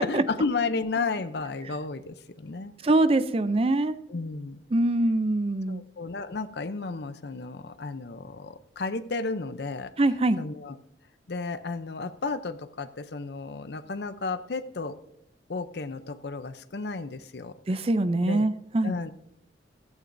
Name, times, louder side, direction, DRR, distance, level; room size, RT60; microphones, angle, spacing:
voice 1, 0.0-2.7 4.1-4.6 5.7-9.9 10.4-10.7 11.3-15.0 15.5-17.8 18.2-18.5 18.8-19.1, left 3 dB, 55° left, 11 dB, 0.6 m, -33 dB
voice 2, 2.8-4.0 4.7-5.8 10.0-10.4 17.7-18.9, right 2 dB, 30° right, 13 dB, 0.4 m, -23 dB
15.5 x 12.0 x 2.6 m, 0.75 s
head